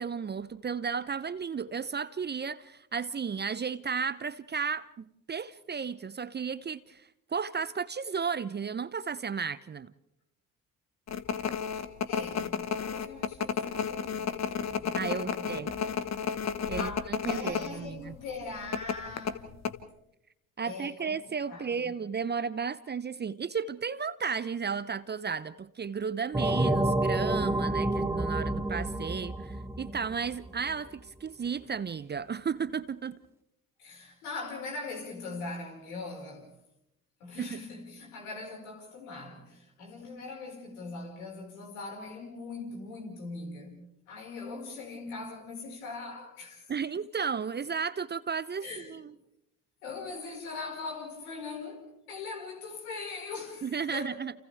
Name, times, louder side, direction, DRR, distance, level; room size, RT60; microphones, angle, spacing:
voice 1, 0.0-9.9 14.7-15.7 16.7-18.1 20.6-33.2 37.4-37.6 46.7-49.1 53.6-54.3, right 6 dB, 25° right, 0.7 m, -34 dB
sound 1, 11.1-17.7 18.0-18.1 18.7-19.7, left 7 dB, 40° left, 1.4 m, -32 dB
voice 2, 12.1-16.0 16.7-19.6 20.6-21.1 21.5-21.9 33.8-36.5 37.2-46.7 48.6-49.0 49.8-54.2, left 3 dB, 75° left, 5.4 m, -41 dB
sound 2, 26.3-30.7, right 1 dB, 5° right, 1.3 m, -29 dB
29.5 x 29.0 x 3.5 m
figure-of-eight pair, 50°, 43 cm